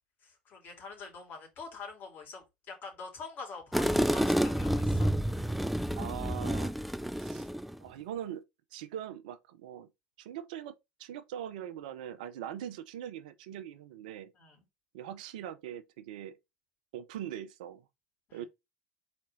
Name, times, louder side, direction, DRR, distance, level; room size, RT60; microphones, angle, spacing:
voice 1, 0.2-5.1 14.3-14.6 18.3-18.5, left 4 dB, 45° left, 3.0 m, -45 dB
sound 1, 3.7-7.8, equal, ahead, 0.4 m, -29 dB
voice 2, 6.0-6.7 7.2-7.5 7.8-8.4 8.7-9.9 10.2-14.3 14.9-16.4 16.9-17.8 18.3-18.5, right 10 dB, 70° right, 0.7 m, -41 dB
4.3 x 4.2 x 5.2 m
hypercardioid pair, 70°, 5 cm